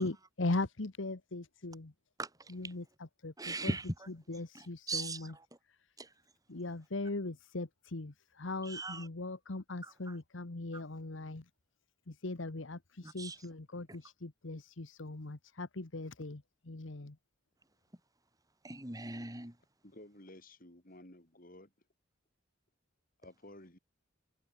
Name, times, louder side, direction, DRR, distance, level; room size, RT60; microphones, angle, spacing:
voice 1, 0.0-1.9 2.5-2.8 3.2-3.7 4.3-5.3 6.5-11.4 12.1-17.1, left 2 dB, 75° left, 1.2 m, -39 dB
voice 2, 2.2-2.7 3.4-4.1 4.5-5.5 6.0-6.1 8.6-9.1 9.8-10.2 10.7-10.8 13.0-13.5 13.9-14.0 18.6-19.6, right 2 dB, 20° right, 4.0 m, -40 dB
voice 3, 19.8-21.7 23.2-23.8, left 1 dB, 45° left, 4.9 m, -54 dB
head